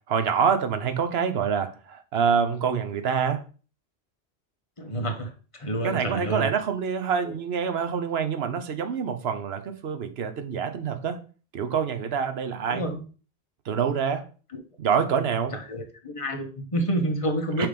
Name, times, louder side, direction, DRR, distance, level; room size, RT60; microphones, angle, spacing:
voice 1, 0.0-3.4 5.8-11.2 11.5-12.8 13.6-14.2 14.8-15.5 17.6-17.7, right 7 dB, 80° right, 1.0 m, -26 dB
voice 2, 4.8-6.5 7.2-7.3 12.7-13.0 14.5-14.6 15.5-17.7, right 1 dB, 35° left, 1.1 m, -29 dB
5.9 x 3.5 x 5.0 m
omnidirectional pair, 1.0 m